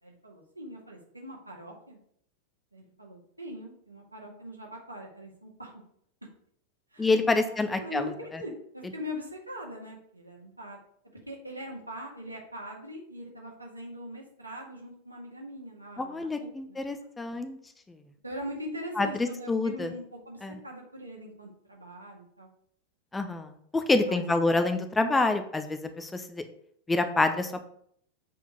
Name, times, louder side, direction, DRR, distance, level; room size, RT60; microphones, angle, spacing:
voice 1, 0.0-2.0 2.7-5.7 6.9-7.1 7.5-10.8 11.3-16.8 17.2-17.4 18.2-22.5 24.0-24.4, equal, 85° right, -2 dB, 2.0 m, -41 dB
voice 2, 7.0-8.0 16.0-17.6 19.0-19.9 20.4-20.5 23.1-26.4 26.9-27.6, left 3 dB, 10° left, 8 dB, 0.7 m, -27 dB
7.5 x 4.6 x 5.2 m, 0.67 s
figure-of-eight pair, 90°, 0 cm